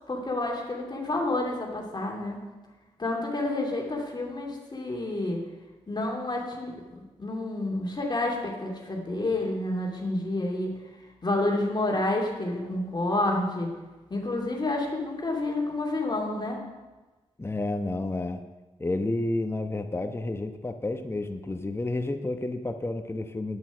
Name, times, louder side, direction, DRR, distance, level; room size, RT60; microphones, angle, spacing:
voice 1, 0.1-2.4 3.0-5.4 5.9-10.7 11.2-13.7 14.1-16.6, left 2 dB, 35° left, 0 dB, 2.6 m, -29 dB
voice 2, 17.4-18.4 18.8-23.6, left 2 dB, 20° left, 6 dB, 1.0 m, -30 dB
8.8 x 8.7 x 6.1 m, 1.2 s
supercardioid pair, 40°, 12 cm